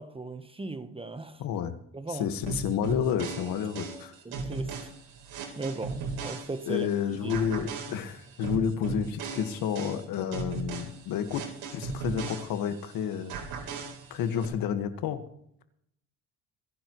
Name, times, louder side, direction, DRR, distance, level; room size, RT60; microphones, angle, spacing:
voice 1, 0.0-1.4 1.9-2.3 4.2-4.7 5.6-6.9 7.2-7.4, right 2 dB, 15° right, 1.1 m, -37 dB
voice 2, 1.4-1.7 2.1-4.1 6.7-11.4 11.7-13.3 14.1-15.2, left 8 dB, 70° left, 1.7 m, -30 dB
sound 1, 2.5-6.9 7.3-12.9 13.3-14.5, right 5 dB, 80° right, 3.8 m, -37 dB
28.0 x 10.5 x 3.1 m
cardioid pair, 90°, 36 cm